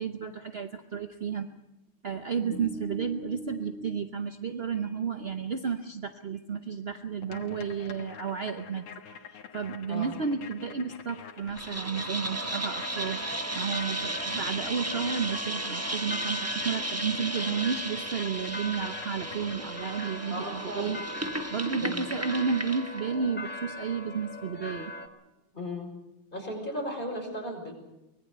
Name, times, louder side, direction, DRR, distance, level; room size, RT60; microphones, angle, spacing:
voice 1, 0.0-1.5 2.0-21.0 21.3-24.9, right 6 dB, 55° right, 7 dB, 0.6 m, -32 dB
sound 1, 7.2-20.0, left 7 dB, 80° left, 2.4 m, -47 dB
sound 2, 11.5-23.0, right 1 dB, 15° right, 0.5 m, -35 dB
sound 3, 12.3-25.1, equal, 5° left, 1.5 m, -41 dB
voice 2, 20.3-20.9 21.8-22.1 25.5-25.9 26.3-27.7, left 1 dB, 20° left, 1 dB, 5.9 m, -36 dB
24.5 x 19.5 x 6.8 m, 0.94 s
omnidirectional pair, 2.4 m